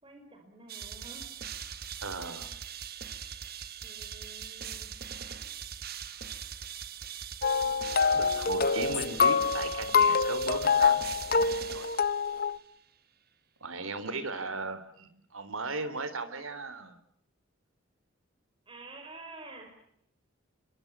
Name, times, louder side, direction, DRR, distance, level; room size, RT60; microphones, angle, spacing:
voice 1, 0.0-1.2 3.8-4.9 7.6-8.7 15.8-16.5 18.7-19.7, right 2 dB, 25° right, 4 dB, 5.2 m, -50 dB
sound 1, 0.7-12.6, right 8 dB, 50° right, 1.4 m, -41 dB
voice 2, 2.0-2.5 8.1-11.9 13.6-17.0, right 3 dB, 85° right, 11 dB, 3.4 m, -37 dB
sound 2, 7.4-12.6, left 5 dB, 45° left, 0.9 m, -26 dB
29.0 x 22.5 x 6.1 m, 0.69 s
head